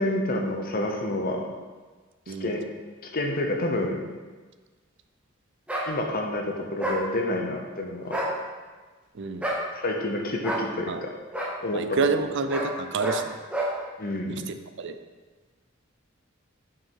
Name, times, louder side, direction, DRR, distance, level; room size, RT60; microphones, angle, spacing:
voice 1, 0.0-1.5 2.3-2.6 3.0-4.0 5.9-8.2 9.7-11.1 11.6-12.0 14.0-14.4, left 1 dB, 45° left, 2 dB, 0.9 m, -28 dB
sound 1, 5.7-5.9 6.8-7.0 8.0-8.3 9.4-9.6 10.4-10.7 11.3-11.5 12.5-12.7 13.0-13.2 13.5-13.7, right 1 dB, 5° right, 0.9 m, -28 dB
voice 2, 9.1-9.5 10.9-11.0 11.7-13.4 14.3-15.0, right 4 dB, 65° right, 9 dB, 0.5 m, -28 dB
5.7 x 5.6 x 4.7 m, 1.3 s
head